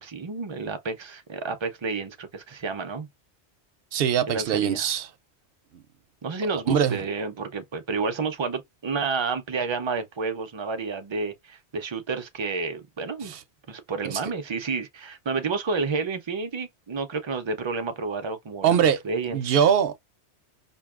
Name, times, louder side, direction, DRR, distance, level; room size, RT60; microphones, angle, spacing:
voice 1, 0.0-3.1 4.3-4.9 6.2-13.4 13.7-19.6, right 4 dB, 50° right, 0.3 m, -30 dB
voice 2, 3.9-5.1 6.7-7.0 13.2-13.4 14.0-14.2 18.6-19.0 19.3-20.0, right 8 dB, 65° right, 0.7 m, -22 dB
4.5 x 2.6 x 2.3 m
omnidirectional pair, 1.2 m